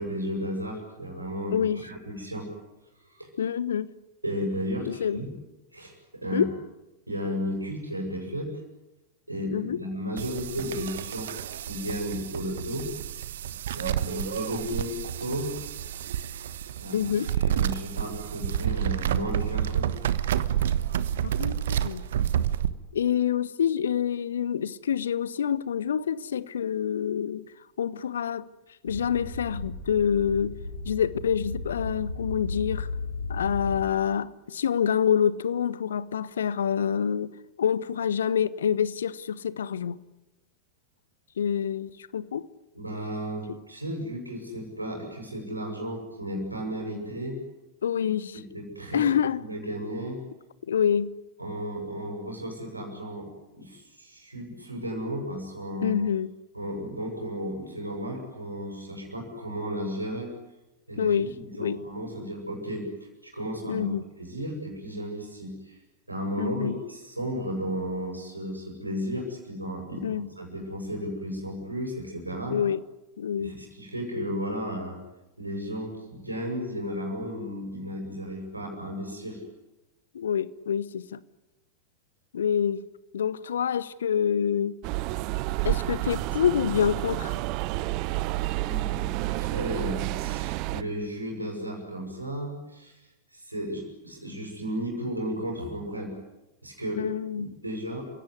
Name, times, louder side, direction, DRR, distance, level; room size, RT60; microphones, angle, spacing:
voice 1, 0.0-2.5 3.1-3.3 4.2-5.3 5.7-6.5 7.1-8.6 9.3-11.3 11.6-12.9 13.7-15.6 16.8-17.0 17.4-19.9 42.7-47.4 48.3-49.1 49.4-50.2 51.4-56.0 56.5-60.3 60.9-62.9 63.2-63.9 64.1-65.8 66.1-72.6 73.4-75.0 75.4-79.4 88.6-92.9 93.3-96.1 96.6-97.0 97.3-98.0, equal, 85° right, 7.7 m, -34 dB
voice 2, 1.5-1.8 3.4-3.9 4.8-5.2 6.3-6.5 9.5-9.8 16.9-17.3 21.2-22.0 22.9-27.5 27.8-28.5 28.8-30.6 30.8-32.9 33.3-40.0 41.4-42.5 47.8-48.4 48.9-49.4 50.7-51.1 55.8-56.3 61.0-61.3 61.6-61.8 63.7-64.0 66.4-66.8 70.0-70.3 72.5-72.8 73.2-73.5 80.1-81.2 82.3-82.9 83.1-84.8 85.6-87.4 97.0-97.5, left 8 dB, 65° left, 1.0 m, -27 dB
sound 1, 10.2-22.7, right 10 dB, 60° right, 1.2 m, -29 dB
sound 2, 28.9-33.8, left 3 dB, 80° left, 3.3 m, -35 dB
sound 3, 84.8-90.8, right 18 dB, 45° right, 0.9 m, -30 dB
30.0 x 17.5 x 9.9 m
figure-of-eight pair, 90°, 0 cm